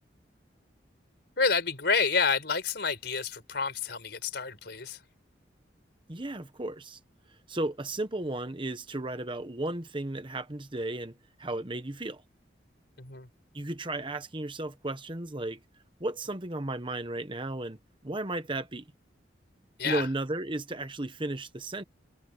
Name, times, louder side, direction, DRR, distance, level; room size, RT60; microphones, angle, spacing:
voice 1, 1.4-5.0 13.0-13.3 19.8-20.1, left 5 dB, 60° left, 4.7 m, -29 dB
voice 2, 6.1-7.0 7.5-12.2 13.5-15.6 16.0-18.8 19.8-21.8, right 2 dB, 25° right, 1.1 m, -34 dB
head